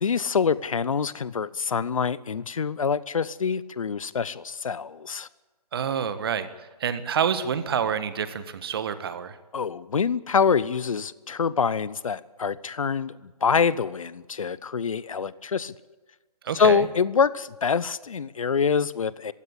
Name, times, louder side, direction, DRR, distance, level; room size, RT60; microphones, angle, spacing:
voice 1, 0.0-5.3 9.5-15.7 16.5-19.3, left 6 dB, 55° left, 19 dB, 0.8 m, -25 dB
voice 2, 5.7-9.4 16.4-16.9, right 7 dB, 35° right, 12 dB, 1.5 m, -28 dB
22.0 x 16.0 x 8.6 m, 1.2 s
figure-of-eight pair, 150°, 20 cm